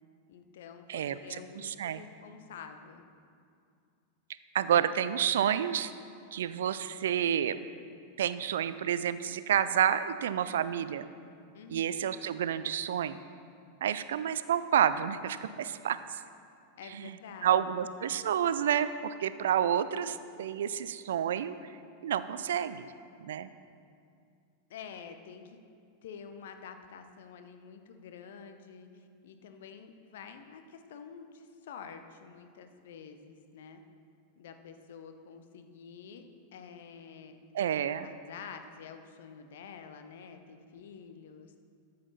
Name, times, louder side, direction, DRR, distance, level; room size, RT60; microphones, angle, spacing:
voice 1, 0.3-3.0 11.5-12.0 16.8-17.8 24.7-25.6 26.0-33.8 34.3-36.2 36.5-37.4 38.0-41.5, left 6 dB, 55° left, 7 dB, 0.8 m, -48 dB
voice 2, 0.9-2.0 4.5-5.9 6.3-7.6 8.2-11.0 11.7-13.2 13.8-16.2 16.9-17.1 17.4-21.5 22.0-22.9 23.2-23.5 37.5-38.1, right 9 dB, 60° right, 13 dB, 0.4 m, -29 dB
13.5 x 7.8 x 4.1 m, 2.4 s
figure-of-eight pair, 90°, 0 cm